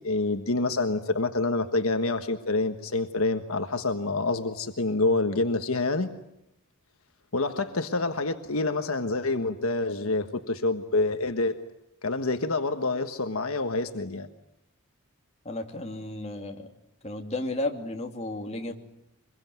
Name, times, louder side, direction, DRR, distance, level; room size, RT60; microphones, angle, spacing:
voice 1, 0.0-6.1 7.3-11.6 12.0-14.3, left 2 dB, 70° left, 7 dB, 1.4 m, -27 dB
voice 2, 15.4-16.7 17.0-18.7, left 2 dB, 30° left, 3 dB, 2.8 m, -33 dB
25.0 x 22.5 x 9.4 m, 0.80 s
head